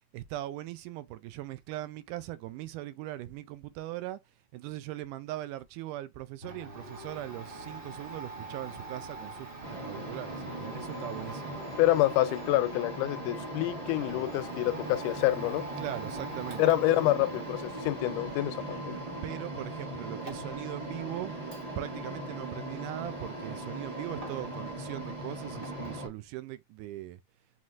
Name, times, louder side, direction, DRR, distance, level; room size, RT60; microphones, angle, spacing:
voice 1, 0.1-4.2 4.5-9.3 9.9-11.6 15.8-16.6 19.2-21.3 21.8-27.2, right 15 dB, 85° right, 2.1 m, -40 dB
Domestic sounds home sounds, 6.4-24.7 25.0-26.1, right 2 dB, 35° right, 0.8 m, -46 dB
sound 1, 9.6-26.1, right 1 dB, 70° right, 0.3 m, -39 dB
voice 2, 11.8-15.6 16.6-19.0, left 15 dB, 85° left, 2.1 m, -27 dB
5.7 x 3.1 x 2.4 m
omnidirectional pair, 3.7 m